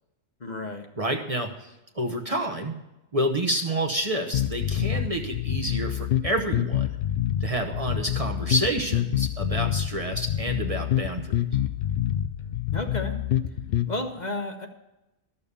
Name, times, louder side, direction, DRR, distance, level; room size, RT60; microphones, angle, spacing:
voice 1, 0.4-0.9 12.7-13.2 13.9-14.7, left 2 dB, 40° left, 4 dB, 1.0 m, -32 dB
voice 2, 1.0-2.7 3.1-6.9 7.4-11.3, right 1 dB, 35° right, 2 dB, 0.9 m, -29 dB
sound 1, 4.3-13.9, left 11 dB, 60° left, 0.7 m, -27 dB
12.5 x 6.9 x 6.8 m, 0.96 s
omnidirectional pair, 1.2 m